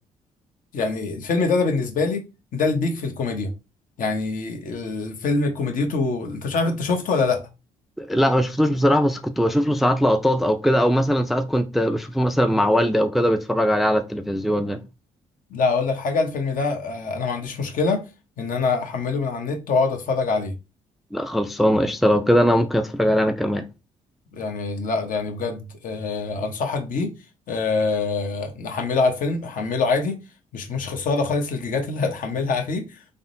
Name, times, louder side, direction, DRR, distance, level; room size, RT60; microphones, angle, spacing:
voice 1, 0.7-2.2 2.5-3.5 4.0-7.4 15.5-18.1 18.4-20.5 24.3-27.1 27.5-30.2 30.5-32.9, left 4 dB, 65° left, 0.9 m, -24 dB
voice 2, 8.0-14.8 21.1-23.6, equal, ahead, 0.3 m, -20 dB
3.5 x 2.0 x 2.6 m
supercardioid pair, 60°, 15 cm